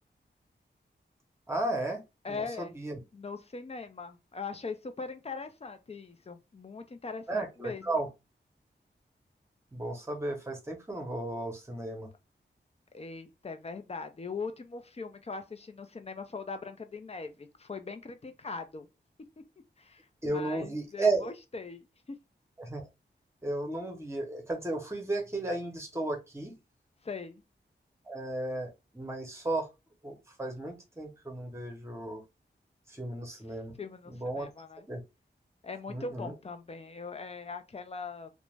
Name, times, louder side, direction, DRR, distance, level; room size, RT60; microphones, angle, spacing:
voice 1, 1.5-2.0 2.3-3.0 7.3-8.1 9.7-12.1 20.2-21.3 22.6-22.8 23.4-26.5 28.1-29.7 30.0-32.2 32.9-33.7 34.1-34.5 34.9-35.0 35.9-36.3, right 2 dB, 15° right, 0.8 m, -34 dB
voice 2, 2.2-2.8 3.1-7.9 12.9-18.9 19.8-22.2 27.0-27.4 33.8-34.9 35.6-38.3, left 4 dB, 35° left, 0.5 m, -41 dB
2.5 x 2.2 x 3.1 m
wide cardioid pair, 100°, 19 cm